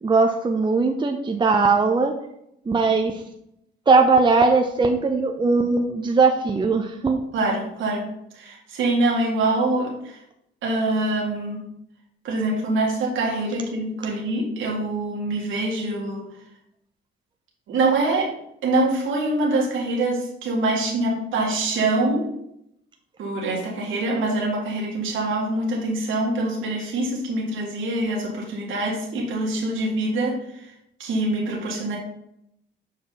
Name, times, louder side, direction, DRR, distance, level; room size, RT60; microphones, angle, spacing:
voice 1, 0.0-2.1 2.7-3.2 3.9-7.2, right 4 dB, 25° right, 4 dB, 0.7 m, -19 dB
voice 2, 7.3-10.2 10.6-11.7 12.2-16.3 17.7-18.3 18.6-22.3 23.2-30.7 31.0-32.0, right 2 dB, 80° right, -3 dB, 1.9 m, -24 dB
7.2 x 4.6 x 3.9 m, 0.77 s
cardioid pair, 90°, 20 cm